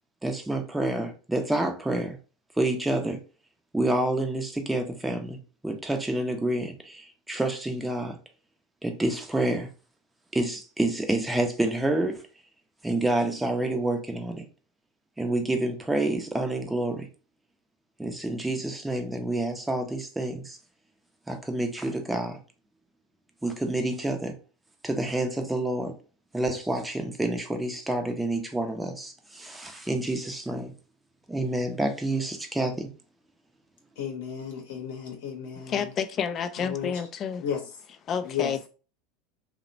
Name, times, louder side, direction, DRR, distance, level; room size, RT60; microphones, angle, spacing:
voice 1, 0.2-2.2 2.6-3.2 3.7-5.4 5.6-8.2 8.8-9.7 10.3-12.2 12.8-14.4 15.2-17.1 18.0-20.6 21.3-22.4 23.4-24.3 24.8-25.9 26.3-30.7 31.3-32.9, right 1 dB, 10° right, 0.6 m, -28 dB
voice 2, 34.0-35.9 36.6-36.9 37.4-37.6 38.2-38.5, left 8 dB, 70° left, 0.7 m, -33 dB
voice 3, 35.6-37.5 38.1-38.7, left 7 dB, 40° left, 0.3 m, -30 dB
2.7 x 2.1 x 2.6 m
hypercardioid pair, 90°, 0 cm